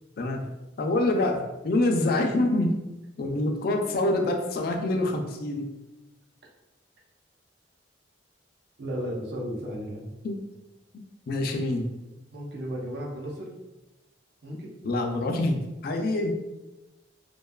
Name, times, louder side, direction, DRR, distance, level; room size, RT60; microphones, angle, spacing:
voice 1, 0.2-2.8 3.2-5.7 10.2-10.4 11.3-11.9 14.8-16.3, left 2 dB, 55° left, 3 dB, 0.3 m, -26 dB
voice 2, 8.8-10.1 12.3-13.5 14.4-14.7, equal, 60° right, -1 dB, 0.5 m, -34 dB
2.5 x 2.2 x 2.2 m, 1.0 s
head